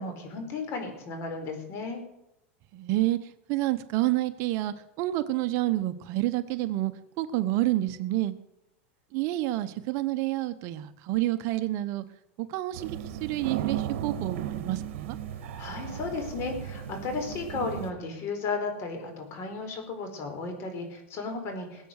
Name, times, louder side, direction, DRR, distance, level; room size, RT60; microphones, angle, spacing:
voice 1, 0.0-2.0 15.6-21.9, left 3 dB, 40° left, 5 dB, 4.4 m, -34 dB
voice 2, 2.7-3.2 3.5-6.9 7.2-8.3 9.1-12.0 12.4-15.2, right 16 dB, 45° right, 11 dB, 0.9 m, -28 dB
sound 1, 12.7-17.9, right 10 dB, 70° right, 1.6 m, -35 dB
20.5 x 8.2 x 6.5 m, 0.86 s
supercardioid pair, 140°, 7 cm